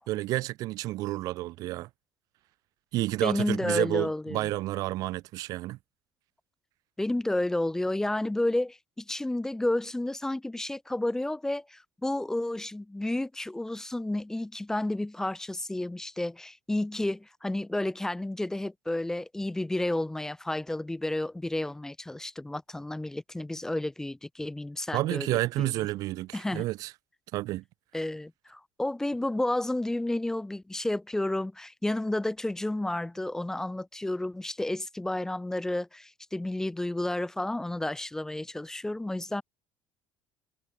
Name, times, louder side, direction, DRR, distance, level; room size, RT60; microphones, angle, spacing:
voice 1, 0.1-1.9 2.9-5.8 24.9-26.9 27.3-27.6, right 17 dB, 65° right, 0.4 m, -30 dB
voice 2, 3.2-4.5 7.0-25.3 25.6-25.7 26.3-26.7 27.9-39.4, left 1 dB, 10° left, 0.5 m, -31 dB
supercardioid pair, 100°, 7 cm